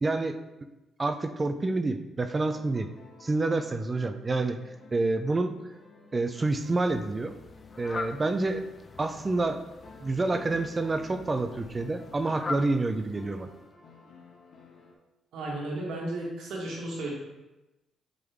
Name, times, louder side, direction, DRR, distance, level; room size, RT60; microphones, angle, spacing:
voice 1, 0.0-0.4 1.0-2.9 3.2-4.6 4.9-5.5 6.1-7.3 7.8-8.6 9.0-9.6 10.0-13.5, right 2 dB, 25° right, 9 dB, 0.5 m, -28 dB
sound 1, 2.4-14.9, left 4 dB, 65° left, 1.1 m, -53 dB
Fowl, 6.4-13.7, left 4 dB, 35° left, 0.4 m, -43 dB
voice 2, 15.3-17.1, right 2 dB, 80° right, -3 dB, 1.9 m, -34 dB
7.7 x 3.8 x 3.5 m, 1.0 s
cardioid pair, 90°, 0 cm